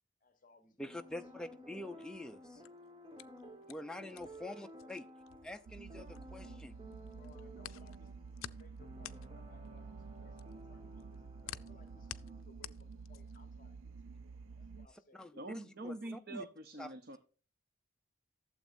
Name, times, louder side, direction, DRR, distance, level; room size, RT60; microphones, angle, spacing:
voice 1, 0.2-1.3 1.6-1.7 4.1-4.9 6.3-6.6 7.1-14.1 14.6-16.4, left 2 dB, 40° left, 1.1 m, -65 dB
voice 2, 0.8-2.6 3.7-5.0 5.4-6.7 15.1-15.3 15.8-16.4 16.8-16.9, left 1 dB, 5° left, 0.5 m, -46 dB
sound 1, 0.8-12.4, equal, 25° right, 1.3 m, -55 dB
sound 2, 2.4-6.6 6.9-13.5, left 12 dB, 90° left, 0.4 m, -51 dB
sound 3, 5.7-14.9, right 4 dB, 75° right, 0.3 m, -50 dB
voice 3, 15.4-17.2, right 1 dB, 50° right, 0.8 m, -45 dB
12.0 x 7.4 x 2.6 m
head